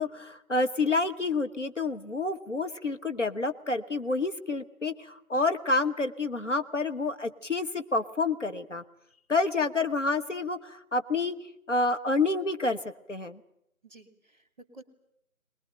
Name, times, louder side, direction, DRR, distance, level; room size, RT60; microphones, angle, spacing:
voice 1, 0.0-8.8 9.3-11.4 11.7-12.8 13.1-13.4, left 3 dB, 55° left, 8 dB, 1.1 m, -28 dB
voice 2, 13.8-14.8, right 2 dB, 30° right, 8 dB, 2.2 m, -52 dB
21.5 x 20.5 x 8.9 m, 0.77 s
figure-of-eight pair, 170°, 43 cm